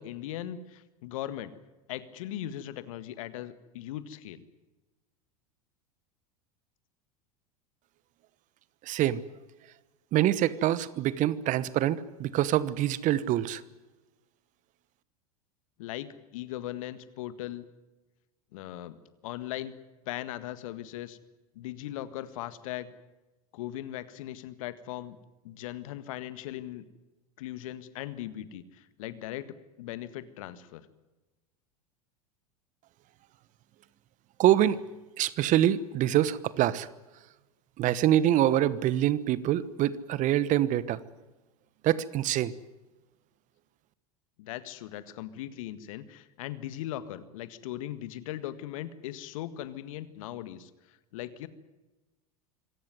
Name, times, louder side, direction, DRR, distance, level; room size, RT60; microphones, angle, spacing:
voice 1, 0.0-1.5 1.9-4.4 15.8-17.6 18.5-19.0 19.2-19.8 20.0-21.2 21.5-22.9 23.5-25.2 25.4-26.8 27.4-30.9 44.4-51.5, left 13 dB, 65° left, 14 dB, 1.8 m, -39 dB
voice 2, 8.8-9.2 10.1-13.6 34.4-34.8 35.2-36.9 37.8-41.0 41.8-42.5, right 12 dB, 40° right, 18 dB, 1.2 m, -25 dB
25.5 x 17.5 x 9.5 m, 1.1 s
hypercardioid pair, 85°, 19 cm